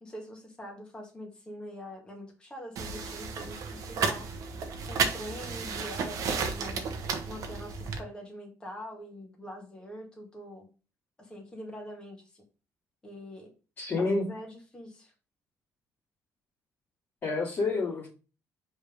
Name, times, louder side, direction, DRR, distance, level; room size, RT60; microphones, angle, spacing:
voice 1, 0.0-4.3 4.9-6.9 7.3-10.7 11.2-12.4 13.0-13.5 14.0-15.1, equal, 15° left, -1 dB, 2.1 m, -44 dB
sound 1, 2.8-8.0, right 5 dB, 65° right, 1.1 m, -33 dB
voice 2, 13.8-14.2 17.2-18.1, left 3 dB, 35° left, -8 dB, 2.4 m, -28 dB
5.1 x 3.7 x 5.1 m, 0.34 s
cardioid pair, 130°, 6 cm